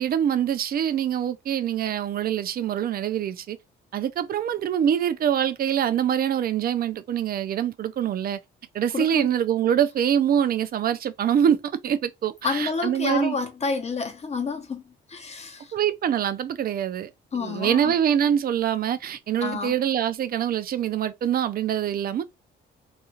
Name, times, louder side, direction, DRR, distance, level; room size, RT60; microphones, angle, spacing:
voice 1, 0.0-3.6 3.9-8.4 8.7-13.4 15.7-17.1 17.4-22.2, right 9 dB, 50° right, 0.4 m, -24 dB
voice 2, 8.9-9.3 12.4-14.8 15.1-15.7 17.3-17.9 19.4-19.7, left 4 dB, 35° left, 0.8 m, -29 dB
2.4 x 2.3 x 2.9 m
cardioid pair, 90°, 20 cm